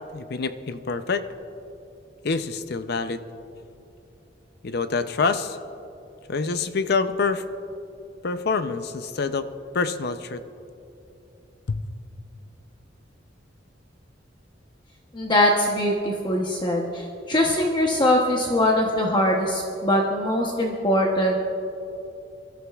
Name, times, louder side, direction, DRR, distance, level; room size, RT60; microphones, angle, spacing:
voice 1, 0.1-1.3 2.2-3.2 4.6-5.6 6.3-7.4 8.2-9.5 9.7-10.4 11.7-11.8, left 4 dB, 60° left, 11 dB, 0.6 m, -26 dB
voice 2, 15.1-21.4, left 1 dB, 25° left, 0 dB, 0.9 m, -22 dB
25.0 x 13.0 x 2.4 m, 2.8 s
head